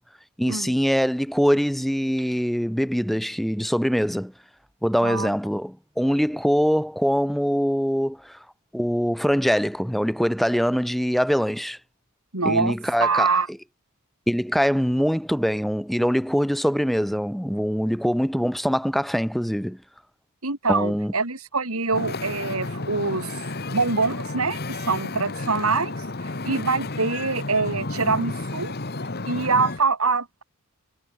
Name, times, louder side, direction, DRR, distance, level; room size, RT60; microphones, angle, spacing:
voice 1, 0.4-4.3 4.8-8.4 8.7-11.8 12.4-13.3 14.3-19.8 20.7-21.1, equal, ahead, 0.8 m, -23 dB
voice 2, 12.3-13.5 20.4-23.4 23.7-26.0 26.4-28.7 29.3-30.4, right 4 dB, 85° right, 4.0 m, -24 dB
Wind / Ocean, 21.9-29.8, left 2 dB, 50° left, 1.6 m, -32 dB
head